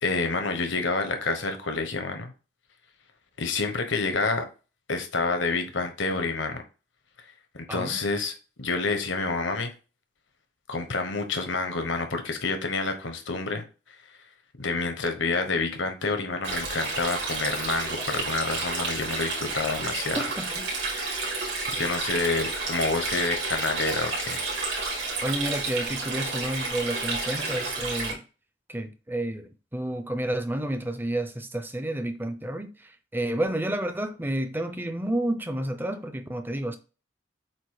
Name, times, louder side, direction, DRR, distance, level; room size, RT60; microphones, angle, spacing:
voice 1, 0.0-2.3 3.4-4.4 4.9-6.6 7.5-9.7 10.7-13.6 14.6-20.2 20.9-21.3 21.8-24.4, left 3 dB, 80° left, 1.2 m, -28 dB
voice 2, 7.7-8.0 20.2-20.7 25.2-28.2 28.7-32.7 33.1-36.8, right 1 dB, 10° right, 0.6 m, -30 dB
Stream, 16.4-28.1, right 3 dB, 70° right, 2.6 m, -31 dB
7.7 x 2.8 x 4.9 m
head